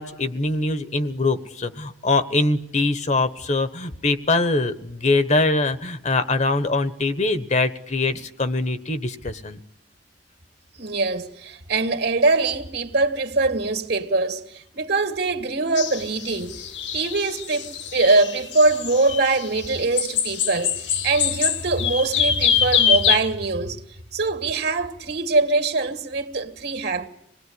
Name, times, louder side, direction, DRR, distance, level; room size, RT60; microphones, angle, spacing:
voice 1, 0.0-9.6, left 2 dB, 40° left, 1.3 m, -23 dB
voice 2, 10.7-16.6 16.9-23.8 24.1-27.1, right 3 dB, 65° right, 2.4 m, -23 dB
sound 1, 15.8-23.2, left 8 dB, 85° left, 1.7 m, -24 dB
26.5 x 19.5 x 9.8 m
head